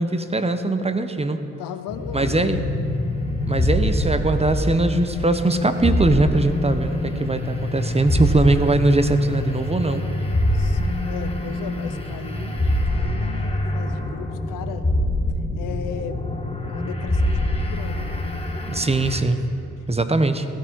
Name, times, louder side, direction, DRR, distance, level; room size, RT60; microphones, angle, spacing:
voice 1, 0.0-1.4 2.1-2.6 3.5-10.0 18.7-19.4 19.9-20.5, right 2 dB, 20° right, 9 dB, 1.1 m, -21 dB
voice 2, 1.6-2.6 10.5-14.9 15.6-16.2 16.7-18.4 19.8-19.9, left 9 dB, 70° left, 9 dB, 0.9 m, -36 dB
sound 1, 1.9-19.2, left 1 dB, 15° left, 2.4 m, -25 dB
16.0 x 13.0 x 4.8 m, 2.6 s
hypercardioid pair, 45°, 33 cm